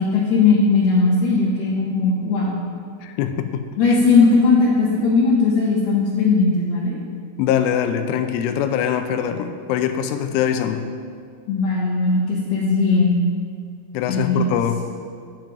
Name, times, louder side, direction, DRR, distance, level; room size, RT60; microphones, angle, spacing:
voice 1, 0.0-2.5 3.8-6.9 11.5-13.2 14.1-14.5, left 4 dB, 70° left, -6 dB, 2.8 m, -18 dB
voice 2, 3.0-4.0 7.4-10.9 13.9-14.9, left 9 dB, 85° left, 7 dB, 3.0 m, -23 dB
10.5 x 7.4 x 5.2 m, 2.2 s
omnidirectional pair, 5.6 m